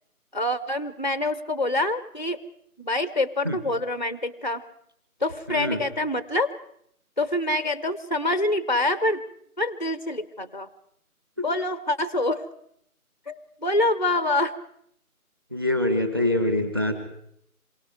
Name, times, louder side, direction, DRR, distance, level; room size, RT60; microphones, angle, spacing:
voice 1, 0.3-2.4 2.8-4.6 5.2-6.5 7.2-9.2 9.6-10.7 11.4-12.4 13.3-14.5, left 1 dB, 30° left, 14 dB, 0.8 m, -26 dB
voice 2, 5.5-5.8 15.5-16.9, left 1 dB, 15° right, 8 dB, 1.5 m, -24 dB
27.5 x 23.5 x 4.8 m, 0.71 s
figure-of-eight pair, 175°, 44 cm